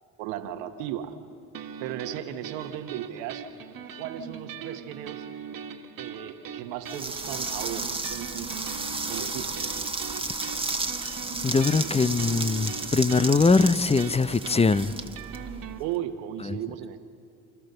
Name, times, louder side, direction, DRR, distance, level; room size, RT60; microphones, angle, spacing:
voice 1, 0.2-1.1 1.8-3.4 3.9-5.3 6.0-8.7 9.1-9.6 15.8-17.0, right 11 dB, 85° right, 1.4 m, -36 dB
sound 1, 1.5-15.8, right 7 dB, 60° right, 1.8 m, -41 dB
sound 2, 6.9-15.9, right 3 dB, 15° right, 1.5 m, -33 dB
voice 2, 11.4-15.0, left 4 dB, 15° left, 0.6 m, -22 dB
29.0 x 13.5 x 6.7 m
hypercardioid pair, 60°, 39 cm